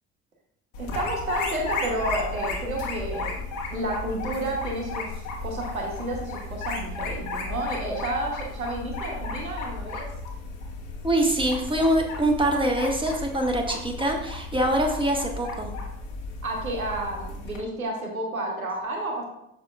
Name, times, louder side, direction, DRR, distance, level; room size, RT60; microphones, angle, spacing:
sound 1, 0.7-17.6, left 3 dB, 70° left, 1.6 m, -34 dB
voice 1, 0.8-3.4 3.7-10.1 16.4-19.2, right 1 dB, 90° right, 0 dB, 1.1 m, -31 dB
voice 2, 11.0-15.7, right 1 dB, 10° right, 2 dB, 1.4 m, -24 dB
8.4 x 6.8 x 2.4 m, 0.82 s
figure-of-eight pair, 55°, 41 cm